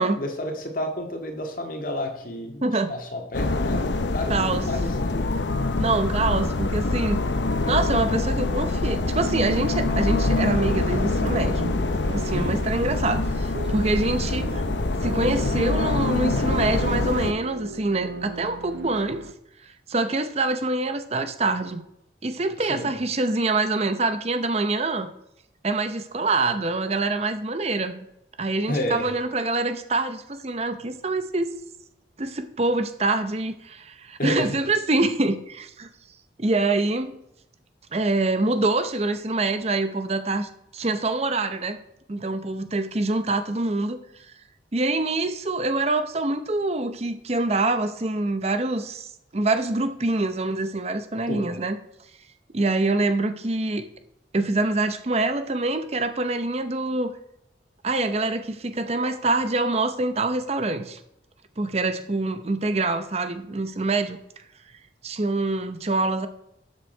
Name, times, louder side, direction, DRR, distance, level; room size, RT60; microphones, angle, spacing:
voice 1, 0.0-3.9 4.1-5.3 12.3-12.6 22.7-22.9 28.7-29.0 34.2-34.5 51.3-51.5, left 1 dB, 50° left, 3 dB, 2.1 m, -30 dB
voice 2, 2.6-2.9 4.3-4.7 5.8-7.2 7.7-11.7 12.1-14.6 15.0-19.2 19.6-21.8 22.2-25.1 25.6-28.1 28.4-31.5 32.2-35.9 36.4-37.1 37.9-41.8 42.1-44.3 44.7-51.8 52.5-53.8 54.3-57.1 57.8-61.0 61.6-64.2 65.0-66.3, right 2 dB, 35° right, 9 dB, 0.7 m, -25 dB
sound 1, 3.3-17.3, left 2 dB, 75° left, 0.8 m, -25 dB
sound 2, 9.0-19.3, right 3 dB, 85° right, 0.7 m, -37 dB
12.5 x 7.5 x 4.5 m, 0.78 s
head